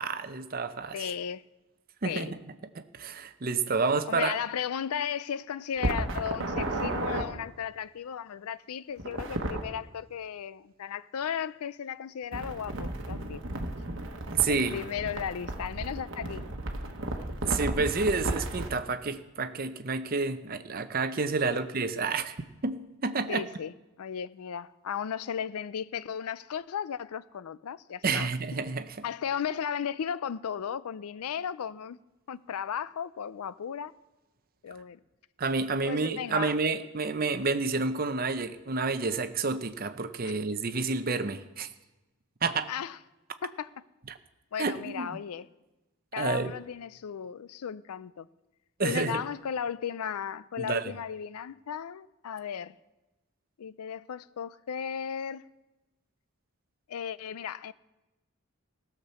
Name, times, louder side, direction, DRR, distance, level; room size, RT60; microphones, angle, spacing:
voice 1, 0.0-1.0 2.0-2.3 2.8-4.3 14.3-14.8 17.4-22.4 22.6-23.4 28.0-29.0 35.4-41.7 42.4-42.7 44.1-44.2 44.6-45.1 46.2-46.5 48.8-49.2 50.6-50.9, right 4 dB, 40° right, 0.6 m, -29 dB
voice 2, 0.9-1.4 2.0-2.3 4.1-13.4 14.5-16.4 21.4-21.6 23.3-28.4 29.0-32.0 32.3-33.9 34.6-35.0 35.8-36.6 40.2-40.3 42.7-43.0 43.4-43.7 44.5-45.5 46.1-48.3 48.8-52.8 53.6-55.4 56.9-57.7, left 8 dB, 80° left, 0.4 m, -35 dB
sound 1, 5.8-7.3 9.0-9.6 12.3-18.7, right 1 dB, 55° right, 1.2 m, -33 dB
16.5 x 5.9 x 6.8 m
head